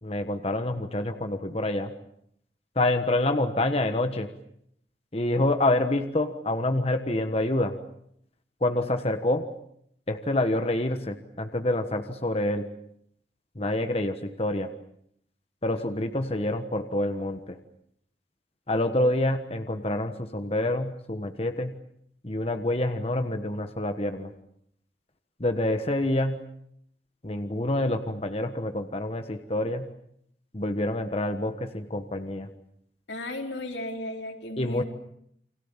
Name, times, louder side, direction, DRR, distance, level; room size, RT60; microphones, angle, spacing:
voice 1, 0.0-1.9 2.7-4.3 5.1-7.7 8.6-9.5 10.1-12.7 13.5-14.7 15.6-17.6 18.7-21.7 22.2-24.3 25.4-26.4 27.2-29.9 30.5-32.5 34.6-34.8, left 1 dB, 35° left, 8 dB, 1.4 m, -27 dB
voice 2, 33.1-34.8, left 1 dB, 90° left, 3 dB, 4.4 m, -35 dB
29.5 x 24.5 x 7.4 m, 0.71 s
head